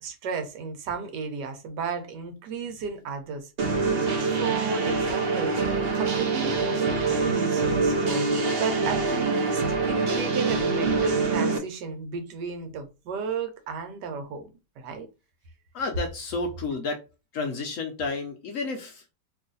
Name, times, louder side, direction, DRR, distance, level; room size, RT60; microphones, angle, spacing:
voice 1, 0.0-3.5 4.0-5.6 5.9-9.6 9.9-14.5 14.8-15.1, right 5 dB, 90° right, 6 dB, 1.4 m, -34 dB
sound 1, 3.6-11.6, right 3 dB, 65° right, 0.6 m, -25 dB
voice 2, 15.7-17.0 17.3-19.1, left 3 dB, 65° left, 4 dB, 0.8 m, -31 dB
3.0 x 2.4 x 3.9 m, 0.29 s
omnidirectional pair, 1.8 m